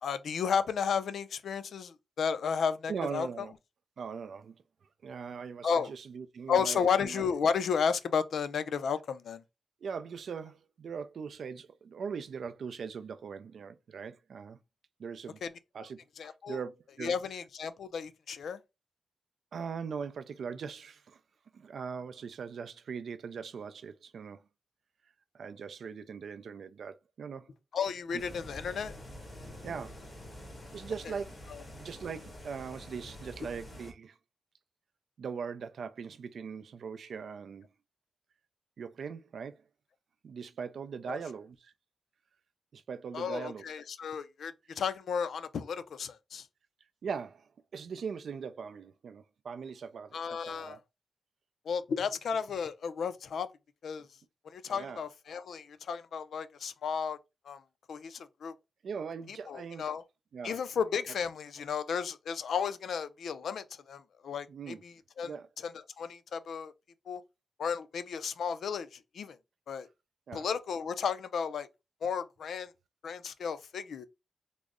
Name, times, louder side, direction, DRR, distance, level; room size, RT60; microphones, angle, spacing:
voice 1, 0.0-3.5 5.6-5.9 6.5-9.4 15.4-15.5 16.2-16.6 17.0-18.6 27.7-28.9 31.5-31.6 41.1-41.2 43.1-46.5 50.1-50.8 51.7-53.5 53.8-54.1 54.5-57.2 57.5-57.6 57.9-58.5 59.5-60.0 60.4-65.3 65.6-65.7 66.0-66.7 67.1-67.2 67.6-69.4 69.7-69.9 70.3-71.7 72.0-72.7 73.0-74.1, left 6 dB, 85° left, 0.3 m, -33 dB
voice 2, 2.9-3.5 4.0-4.6 5.0-7.2 9.8-14.6 15.0-15.4 15.7-16.0 16.2-17.1 19.5-21.2 21.5-24.4 25.3-27.5 28.1-28.2 29.6-30.0 30.7-31.4 31.8-34.2 35.2-37.7 38.8-39.6 40.2-41.7 42.7-43.7 47.0-50.8 54.7-55.0 58.8-59.8 60.3-60.6 64.5-64.8 65.2-65.5 70.3-70.5, right 6 dB, 70° right, 0.3 m, -40 dB
sound 1, 28.2-33.9, left 1 dB, 30° left, 1.5 m, -47 dB
3.7 x 2.0 x 3.5 m
wide cardioid pair, 145°, 0 cm